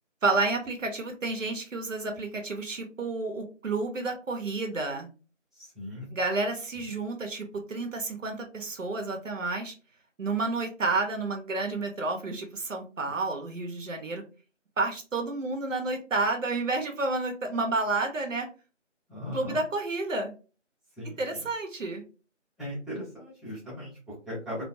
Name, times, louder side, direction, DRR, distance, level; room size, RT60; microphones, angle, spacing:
voice 1, 0.2-5.1 6.1-9.7 10.2-14.2 14.8-18.5 19.3-20.4 21.2-22.0, right 3 dB, 85° right, 4 dB, 0.9 m, -30 dB
voice 2, 5.5-6.1 6.8-6.9 19.1-19.6 21.0-21.4 22.6-24.7, left 1 dB, ahead, -11 dB, 0.6 m, -38 dB
2.5 x 2.2 x 2.6 m, 0.35 s
figure-of-eight pair, 175°, 37 cm